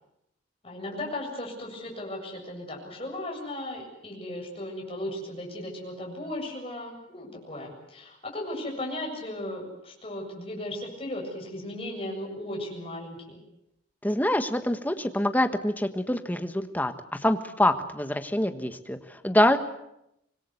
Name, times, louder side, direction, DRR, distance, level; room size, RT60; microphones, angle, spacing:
voice 1, 0.6-13.4, left 1 dB, 30° left, 0 dB, 7.6 m, -36 dB
voice 2, 14.0-19.0 19.2-19.6, left 1 dB, 10° left, 7 dB, 1.5 m, -25 dB
25.5 x 21.0 x 8.1 m, 0.82 s
head